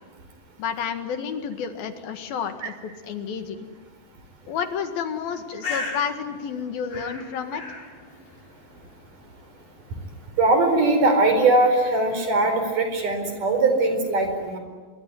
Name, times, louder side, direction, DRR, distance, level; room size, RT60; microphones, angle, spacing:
voice 1, 0.6-3.7 4.5-7.6, left 7 dB, 75° left, 7 dB, 3.6 m, -30 dB
Bird, 5.2-12.8, left 3 dB, 50° left, 9.5 m, -40 dB
voice 2, 10.4-14.6, right 2 dB, 60° right, 6 dB, 6.1 m, -20 dB
25.5 x 23.5 x 9.7 m, 1.4 s
omnidirectional pair, 4.3 m